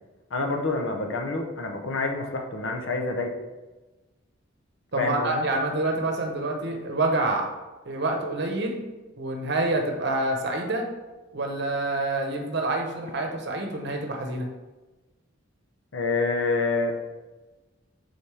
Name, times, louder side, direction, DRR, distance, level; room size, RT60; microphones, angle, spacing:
voice 1, 0.3-3.4 5.0-5.5 15.9-17.0, left 3 dB, 70° left, 3 dB, 0.8 m, -27 dB
voice 2, 4.9-7.4 7.9-8.8 9.2-10.8 11.3-14.5, right 2 dB, 55° right, 2 dB, 1.0 m, -27 dB
6.9 x 4.1 x 3.4 m, 1.2 s
head